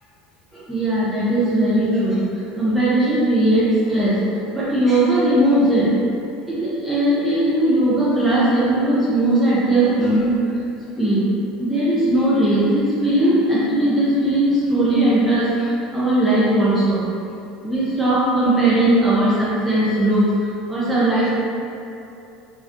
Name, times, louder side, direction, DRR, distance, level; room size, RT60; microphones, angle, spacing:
voice 1, 0.5-2.2 2.6-4.2 4.5-5.9 6.5-10.4 11.0-11.3 11.6-17.0 17.6-20.2 20.7-21.3, right 1 dB, 5° right, -11 dB, 0.7 m, -18 dB
3.3 x 2.4 x 2.7 m, 2.8 s
figure-of-eight pair, 70°, 0 cm